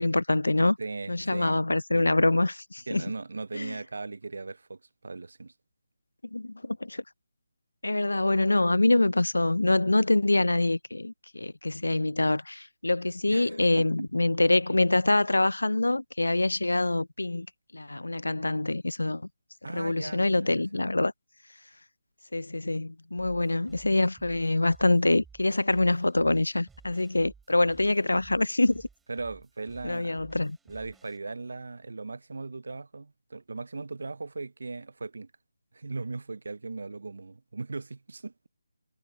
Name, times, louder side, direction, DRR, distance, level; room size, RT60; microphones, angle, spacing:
voice 1, 0.0-0.8 1.1-3.0 3.5-3.8 6.3-7.0 7.8-17.5 17.7-19.3 19.7-21.1 22.3-28.9 29.8-30.6, left 2 dB, 85° left, 0.4 m, -25 dB
voice 2, 0.8-1.6 1.9-2.0 2.9-5.5 13.3-14.1 19.6-20.9 29.1-30.2 30.7-35.3 35.7-38.3, right 3 dB, 70° right, 0.5 m, -38 dB
sound 1, 23.2-31.2, right 5 dB, 5° right, 4.6 m, -57 dB
figure-of-eight pair, 155°, 0 cm